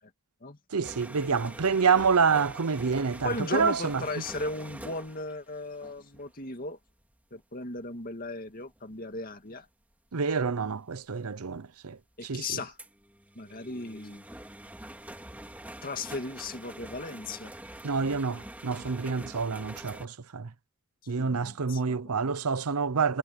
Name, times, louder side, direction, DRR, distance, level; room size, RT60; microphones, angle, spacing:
voice 1, 0.7-4.0 10.1-12.6 17.8-20.5 21.1-23.2, right 5 dB, 90° right, 0.7 m, -27 dB
sound 1, 0.8-6.4 6.9-7.1 7.8-8.1 8.7-9.0 10.7-10.8 11.4-11.5 11.9-12.0 12.8-20.1, right 1 dB, 5° right, 2.3 m, -45 dB
voice 2, 3.2-6.8 7.3-9.7 12.2-12.8 13.4-14.2 15.8-17.5 21.2-22.0, left 2 dB, 40° left, 2.3 m, -36 dB
head